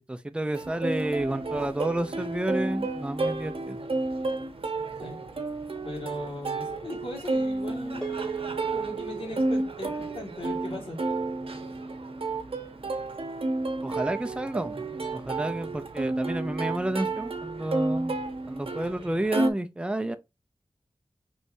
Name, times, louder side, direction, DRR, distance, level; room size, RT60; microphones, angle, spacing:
voice 1, 0.1-3.8 13.8-14.8 15.1-18.2 18.5-20.2, right 1 dB, 10° right, 0.5 m, -30 dB
Plucked string instrument, 0.5-19.5, right 2 dB, 75° right, 0.8 m, -31 dB
voice 2, 5.8-8.1 8.7-11.0, left 2 dB, 75° left, 1.9 m, -38 dB
sound 1, 8.0-12.5, right 8 dB, 5° left, 1.4 m, -41 dB
4.6 x 3.2 x 2.7 m
wide cardioid pair, 75°, 10 cm